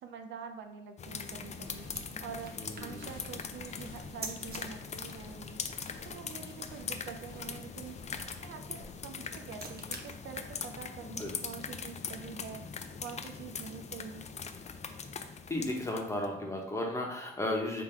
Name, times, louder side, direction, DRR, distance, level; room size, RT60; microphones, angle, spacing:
voice 1, 0.0-1.9 2.2-5.6 6.0-8.0 8.4-12.6 13.0-14.3, right 6 dB, 70° right, 6 dB, 0.5 m, -46 dB
sound 1, 1.0-16.2, left 6 dB, 35° left, 0.4 m, -42 dB
sound 2, 1.1-4.6 8.8-12.1, right 4 dB, 50° right, 0.9 m, -50 dB
sound 3, 1.3-9.1, left 2 dB, 75° left, 1.0 m, -53 dB
voice 2, 2.6-3.2 11.0-11.3 15.5-17.8, left 1 dB, 15° left, -1 dB, 1.1 m, -34 dB
3.8 x 2.9 x 4.5 m, 0.82 s
cardioid pair, 90°, 20 cm